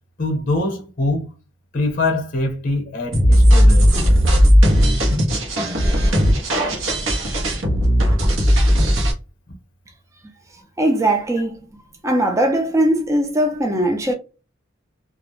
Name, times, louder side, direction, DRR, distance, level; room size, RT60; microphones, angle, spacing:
voice 1, 0.2-1.3 1.7-4.1, left 2 dB, 45° left, 0.7 m, -23 dB
sound 1, 3.1-9.1, equal, 75° right, 0.8 m, -15 dB
voice 2, 10.8-11.7 12.0-14.1, right 1 dB, 15° right, 0.4 m, -19 dB
2.3 x 2.0 x 2.9 m
head